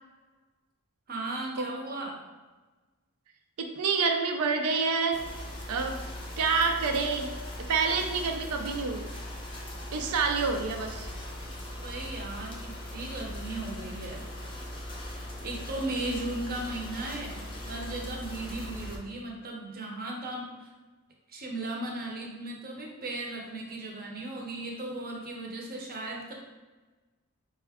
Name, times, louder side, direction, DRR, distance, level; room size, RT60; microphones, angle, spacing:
voice 1, 1.1-2.2 11.8-14.2 15.4-20.7 21.3-26.3, right 2 dB, 40° right, 0 dB, 0.7 m, -36 dB
voice 2, 3.6-5.2 5.7-6.0 6.4-7.3 7.6-9.1 9.9-11.1, right 4 dB, 75° right, 4 dB, 0.5 m, -28 dB
sound 1, 5.1-19.0, left 1 dB, 20° left, 0.6 m, -40 dB
5.0 x 2.3 x 3.5 m, 1.2 s
head